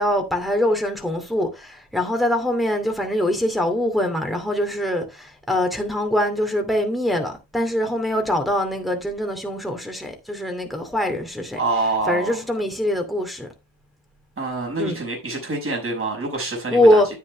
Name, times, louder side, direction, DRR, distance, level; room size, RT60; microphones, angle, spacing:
voice 1, 0.0-11.6 12.1-13.5 14.8-15.0 16.7-17.1, left 1 dB, ahead, 2.5 m, -23 dB
voice 2, 11.6-12.4 14.4-17.0, right 3 dB, 30° right, 5.9 m, -26 dB
9.9 x 7.9 x 3.3 m
cardioid pair, 85°, 43 cm